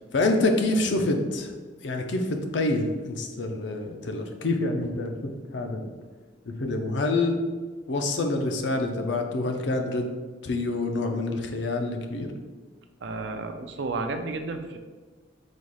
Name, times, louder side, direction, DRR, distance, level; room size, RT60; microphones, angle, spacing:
voice 1, 0.1-1.5 1.8-5.1 5.5-5.9 6.5-7.4 7.9-10.1 10.4-12.3, left 2 dB, 65° left, 4 dB, 0.5 m, -26 dB
voice 2, 13.0-14.8, right 3 dB, 65° right, 6 dB, 0.4 m, -32 dB
4.1 x 2.4 x 4.7 m, 1.4 s
head